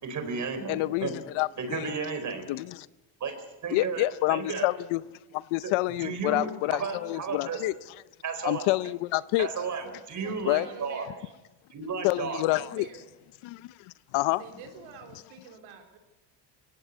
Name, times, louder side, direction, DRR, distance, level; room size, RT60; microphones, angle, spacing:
voice 1, 0.0-1.1 1.6-2.5 3.2-4.0 4.3-4.7 5.6-5.7 6.0-7.6 8.2-8.7 9.4-11.1 11.7-12.4, right 5 dB, 35° right, 4.3 m, -33 dB
voice 2, 0.7-1.9 2.5-2.8 3.7-5.0 5.3-7.7 8.4-9.5 10.4-10.7 12.0-12.8 13.4-14.4, left 19 dB, 75° left, 0.8 m, -28 dB
voice 3, 10.6-11.3 12.5-13.1 14.4-16.0, right 6 dB, 75° right, 3.7 m, -46 dB
23.5 x 17.5 x 8.2 m
cardioid pair, 130°, 48 cm